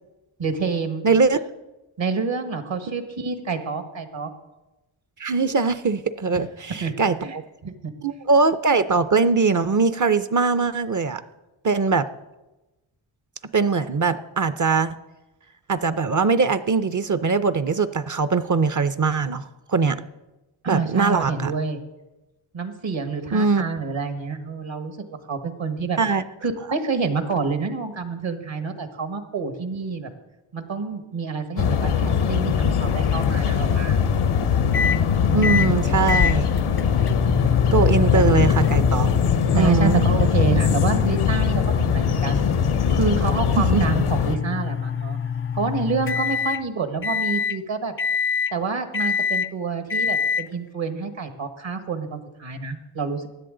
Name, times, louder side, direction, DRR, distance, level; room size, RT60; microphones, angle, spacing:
voice 1, 0.4-1.0 2.0-4.3 6.8-6.9 7.2-7.4 7.6-7.9 20.6-21.8 22.5-25.0 25.3-26.0 26.4-30.1 30.5-34.0 38.1-38.2 39.5-42.5 42.9-45.2 45.5-47.9 48.5-53.3, right 4 dB, 65° right, 8 dB, 1.5 m, -28 dB
voice 2, 1.0-1.4 5.2-7.4 8.0-11.2 11.6-12.1 13.5-14.9 15.7-20.0 20.7-21.5 23.3-23.6 26.0-26.2 35.3-36.5 37.7-39.1 39.5-40.0 43.6-43.8, right 4 dB, 40° right, 13 dB, 0.6 m, -21 dB
sound 1, 31.6-44.4, left 7 dB, 85° left, 0.9 m, -21 dB
sound 2, 34.7-35.0 35.4-35.7 36.1-46.6 47.0-47.6 48.0-48.5 48.9-49.5 49.9-50.4, left 7 dB, 30° left, 0.4 m, -26 dB
16.0 x 10.0 x 3.9 m, 1.0 s
cardioid pair, 60°, 48 cm